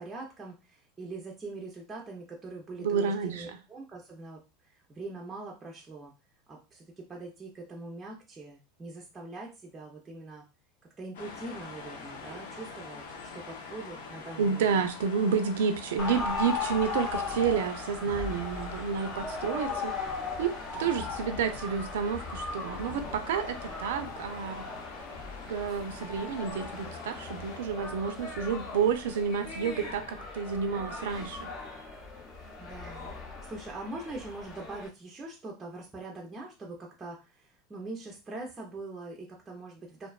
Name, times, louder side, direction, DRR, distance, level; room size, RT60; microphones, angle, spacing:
voice 1, 0.0-6.1 6.5-10.4 11.0-14.9 32.6-33.1 33.5-40.1, right 2 dB, 15° right, -2 dB, 0.4 m, -43 dB
voice 2, 2.8-3.5 14.4-19.9 20.4-24.6 25.5-31.5, right 6 dB, 90° right, 8 dB, 0.4 m, -30 dB
sound 1, 11.1-27.6, left 4 dB, 85° left, 0.6 m, -46 dB
sound 2, 16.0-34.9, left 4 dB, 40° left, 0.6 m, -38 dB
2.5 x 2.2 x 2.3 m, 0.29 s
supercardioid pair, 150°, 0 cm